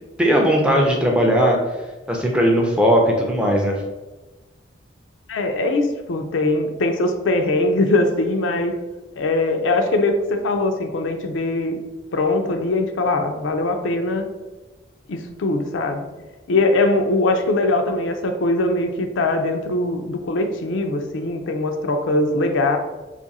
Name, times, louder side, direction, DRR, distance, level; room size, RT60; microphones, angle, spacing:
voice 1, 0.2-1.6 2.1-3.8, equal, 5° right, 0 dB, 0.4 m, -18 dB
voice 2, 5.3-8.7 9.2-11.8 12.1-14.3 15.1-16.1 16.5-22.8, left 2 dB, 85° left, 5 dB, 0.4 m, -21 dB
3.0 x 2.4 x 4.0 m, 1.2 s
head